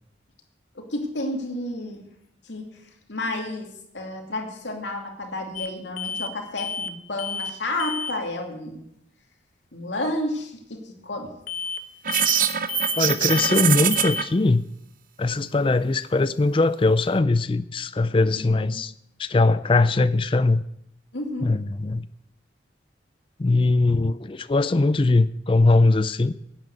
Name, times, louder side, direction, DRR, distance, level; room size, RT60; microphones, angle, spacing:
voice 1, 0.7-2.0 2.4-2.8 3.1-8.8 9.7-11.3 18.3-18.8 21.1-21.6, left 1 dB, 80° left, 2.6 m, -31 dB
sound 1, 5.5-5.7 6.0-6.3 6.6-6.9 7.2-7.5 7.8-8.1 11.5-11.8 12.1-12.4 12.7-13.0 13.3-13.6 13.9-14.2, left 5 dB, 45° left, 0.8 m, -31 dB
sound 2, 12.0-14.2, right 9 dB, 50° right, 0.7 m, -23 dB
voice 2, 13.0-14.7 15.2-18.9 19.2-20.6 21.4-22.1 23.4-26.4, left 2 dB, 30° left, 0.4 m, -21 dB
11.0 x 9.0 x 8.1 m
head